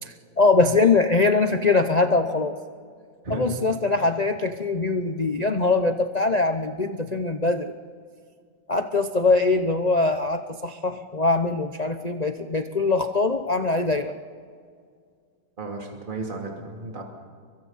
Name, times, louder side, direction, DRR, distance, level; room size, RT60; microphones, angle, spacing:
voice 1, 0.0-2.5 3.3-7.7 8.7-14.1, left 3 dB, 85° left, 7 dB, 0.3 m, -22 dB
voice 2, 3.2-3.6 3.9-4.1 15.6-17.0, right 2 dB, 25° right, 0 dB, 2.9 m, -34 dB
29.5 x 23.5 x 4.1 m, 2.1 s
omnidirectional pair, 2.1 m